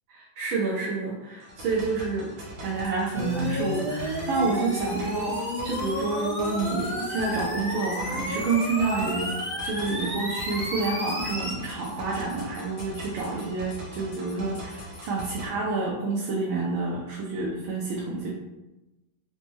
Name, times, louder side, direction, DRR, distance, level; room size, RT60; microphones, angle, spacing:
voice 1, 0.1-2.3 2.6-9.3 9.6-18.3, right 3 dB, 90° right, -3 dB, 1.4 m, -29 dB
sound 1, 1.4-15.5, right 1 dB, 55° right, 0.9 m, -42 dB
sound 2, 2.8-3.2 3.5-4.0 4.3-4.9 5.3-5.9 6.4-7.5 7.9-8.7 9.1-9.4 9.6-15.3, left 5 dB, 75° left, 1.4 m, -49 dB
sound 3, 3.1-11.5, equal, 5° left, 1.0 m, -32 dB
4.1 x 2.2 x 3.0 m, 1.0 s
omnidirectional pair, 2.1 m